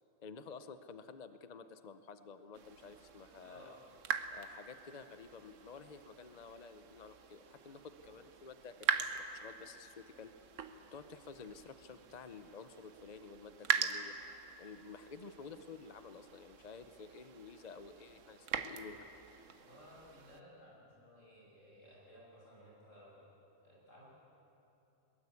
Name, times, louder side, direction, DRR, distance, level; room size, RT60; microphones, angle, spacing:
voice 1, 0.2-3.8 4.3-10.3 10.9-14.1 14.6-19.1, left 5 dB, 40° left, 10 dB, 0.7 m, -51 dB
sound 1, 2.5-20.4, right 7 dB, 70° right, 1.3 m, -42 dB
voice 2, 3.4-3.8 19.6-23.2 23.6-24.1, equal, 75° left, -5 dB, 8.0 m, -58 dB
22.0 x 20.5 x 8.4 m, 3.0 s
omnidirectional pair, 1.4 m